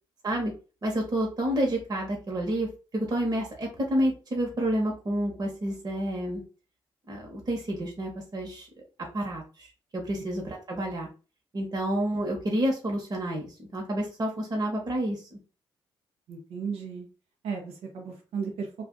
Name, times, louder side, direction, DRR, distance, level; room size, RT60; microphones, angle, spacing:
voice 1, 0.8-6.4 7.1-8.7 9.1-11.1 11.5-15.4, right 1 dB, 40° right, 0 dB, 1.1 m, -29 dB
voice 2, 16.3-17.1 17.4-18.7, right 5 dB, 85° right, 2 dB, 0.7 m, -34 dB
2.4 x 2.4 x 3.7 m, 0.34 s
cardioid pair, 70°, 10 cm